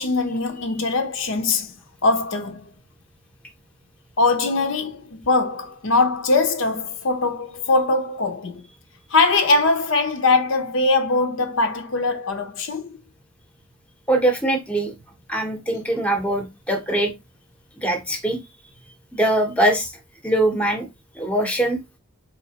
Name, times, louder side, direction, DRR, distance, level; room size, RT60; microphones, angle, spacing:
voice 1, 0.0-1.7 2.0-2.6 4.2-8.7 9.1-13.0, left 3 dB, 60° left, 0.6 m, -21 dB
voice 2, 14.1-14.9 15.3-17.1 17.8-18.4 19.1-19.9 20.2-20.8 21.1-21.8, right 1 dB, 5° left, 0.7 m, -22 dB
4.2 x 3.2 x 2.8 m
head